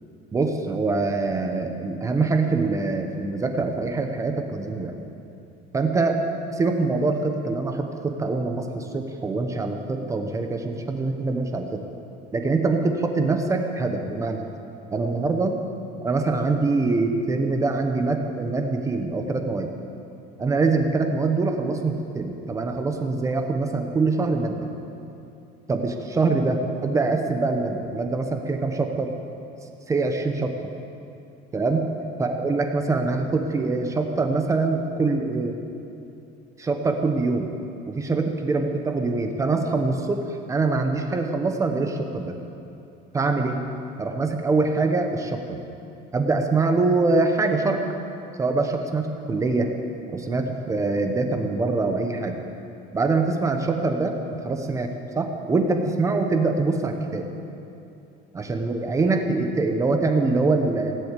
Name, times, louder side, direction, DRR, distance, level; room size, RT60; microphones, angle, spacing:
voice 1, 0.3-4.9 5.7-6.2 6.5-11.8 12.3-14.4 14.9-15.5 16.0-19.7 20.4-24.7 25.7-29.1 29.9-30.5 31.5-31.9 32.2-35.6 36.6-37.5 37.9-42.4 43.1-43.6 44.0-45.6 46.1-47.8 48.4-49.7 50.1-52.4 52.9-57.3 58.3-61.0, right 3 dB, 15° right, 5 dB, 0.8 m, -24 dB
18.5 x 7.7 x 8.3 m, 2.7 s
cardioid pair, 175°, 19 cm